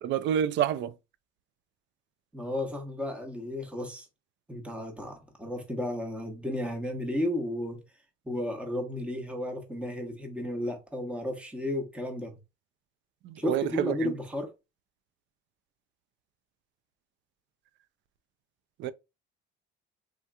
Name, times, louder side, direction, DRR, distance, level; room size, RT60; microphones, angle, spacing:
voice 1, 0.0-0.9 13.2-14.1 18.8-18.9, right 10 dB, 60° right, 0.4 m, -28 dB
voice 2, 2.3-4.1 4.5-7.8 8.3-12.3 13.4-14.5, left 1 dB, 5° right, 0.9 m, -33 dB
3.6 x 2.8 x 2.3 m
cardioid pair, 105°, 21 cm